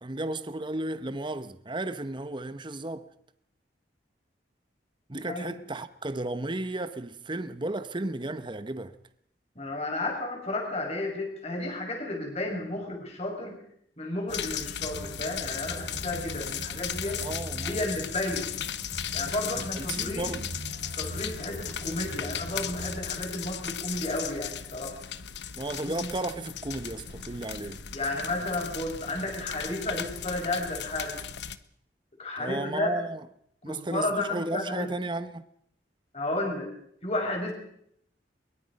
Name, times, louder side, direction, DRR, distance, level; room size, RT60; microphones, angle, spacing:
voice 1, 0.0-3.1 5.1-9.0 17.2-17.8 19.6-20.5 25.5-27.8 32.4-33.3 33.6-35.4, right 2 dB, 25° right, 1.0 m, -34 dB
voice 2, 9.6-13.6 14.0-17.2 17.6-18.5 19.1-20.4 21.0-24.9 25.9-26.1 27.9-31.2 32.2-32.9 33.7-34.9 36.1-36.7 37.0-37.5, left 2 dB, 35° left, 5.7 m, -32 dB
sound 1, 14.3-31.6, left 9 dB, 75° left, 1.1 m, -36 dB
sound 2, 14.8-23.5, right 1 dB, 75° right, 3.7 m, -42 dB
22.5 x 22.5 x 5.4 m
head